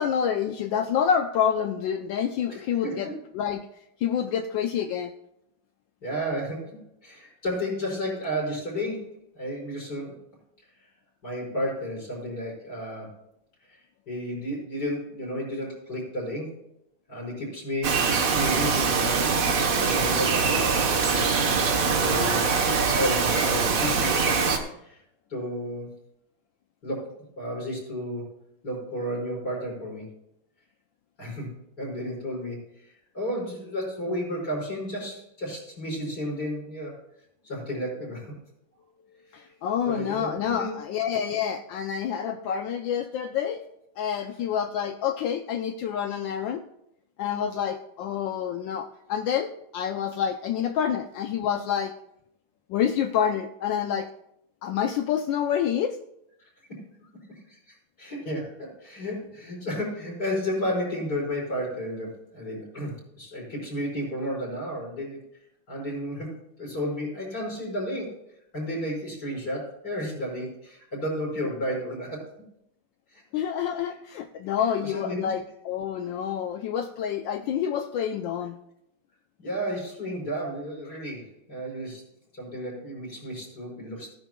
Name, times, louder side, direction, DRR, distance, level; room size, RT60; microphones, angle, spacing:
voice 1, 0.0-3.7 4.0-5.1 39.3-43.6 44.0-46.6 47.2-51.9 52.7-54.1 54.6-56.0 73.3-78.6, left 8 dB, 75° left, 7 dB, 1.3 m, -28 dB
voice 2, 2.5-3.1 6.0-10.2 11.2-13.1 14.1-16.6 17.1-21.4 21.9-22.5 23.0-24.4 24.8-25.0 25.3-25.9 26.8-28.3 28.6-30.2 31.2-32.6 33.1-37.0 37.4-38.3 39.9-40.8 56.4-65.3 65.7-68.2 68.5-72.3 73.1-73.2 74.8-75.3 79.4-82.0 82.3-84.1, equal, 50° left, -5 dB, 5.5 m, -32 dB
Bird vocalization bird call bird song, 17.8-24.6, right 5 dB, 50° right, 1.3 m, -23 dB
17.0 x 10.5 x 2.3 m, 0.78 s
omnidirectional pair, 2.2 m